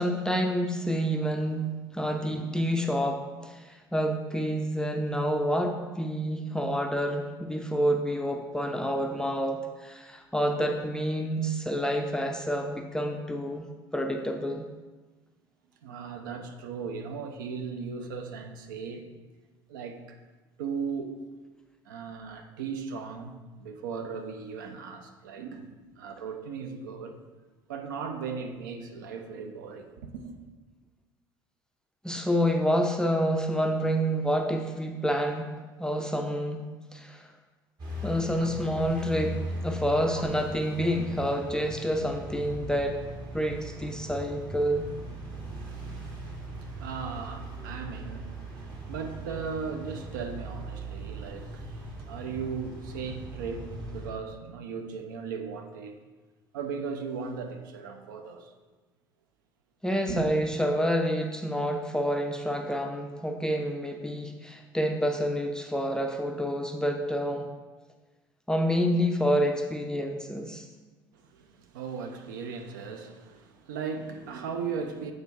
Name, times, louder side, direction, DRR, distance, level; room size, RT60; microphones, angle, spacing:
voice 1, 0.0-13.6 13.9-14.7 32.0-35.5 35.8-37.3 38.0-43.0 43.3-44.9 59.8-67.5 68.5-70.7, equal, 5° left, 4 dB, 0.4 m, -28 dB
voice 2, 15.8-19.1 19.7-20.2 20.6-21.2 21.9-27.2 27.7-30.4 38.0-38.1 38.4-38.5 45.5-45.7 46.1-56.0 56.5-58.5 60.1-60.3 71.1-75.1, right 5 dB, 70° right, 6 dB, 0.5 m, -37 dB
sound 1, 37.8-54.1, right 1 dB, 40° right, 1.4 m, -39 dB
7.8 x 4.7 x 2.7 m, 1.3 s
figure-of-eight pair, 60°, 11 cm